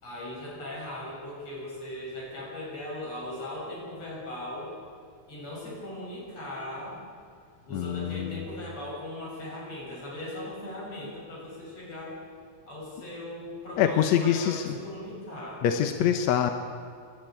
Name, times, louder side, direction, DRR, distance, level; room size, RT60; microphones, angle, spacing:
voice 1, 0.0-4.7 5.3-7.0 7.7-12.2 12.7-15.6, left 1 dB, 45° left, -4 dB, 8.1 m, -38 dB
voice 2, 7.7-8.4 13.8-14.8 15.6-16.5, left 9 dB, 70° left, 7 dB, 1.9 m, -25 dB
29.0 x 11.5 x 9.0 m, 2.3 s
omnidirectional pair, 4.1 m